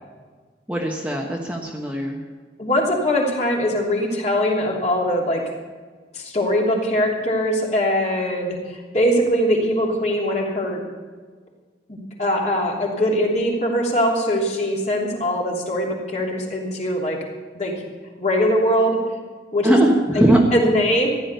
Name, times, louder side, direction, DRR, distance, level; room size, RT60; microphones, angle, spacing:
voice 1, 0.7-2.2 19.6-20.4, right 1 dB, 5° right, -1 dB, 1.3 m, -19 dB
voice 2, 2.6-5.4 6.1-10.8 11.9-17.2 17.5-17.7 18.2-19.0 19.5-19.8 20.1-20.2 20.5-21.1, equal, 40° left, -2 dB, 3.1 m, -21 dB
15.0 x 11.0 x 6.8 m, 1.5 s
head